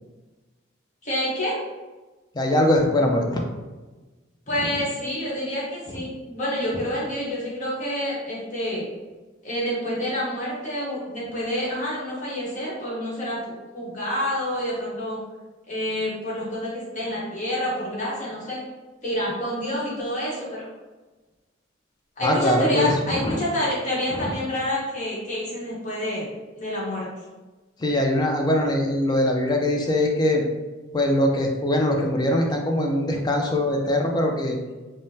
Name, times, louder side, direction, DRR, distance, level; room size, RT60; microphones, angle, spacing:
voice 1, 1.0-1.6 4.5-8.9 9.4-15.2 15.7-18.6 19.0-20.7 22.2-26.3 26.6-27.1, equal, 40° left, -6 dB, 1.0 m, -28 dB
voice 2, 2.3-3.4 22.2-23.4 24.1-24.3 27.8-30.4 30.9-34.6, left 1 dB, 20° left, 1 dB, 0.4 m, -22 dB
3.5 x 2.1 x 2.7 m, 1.2 s
head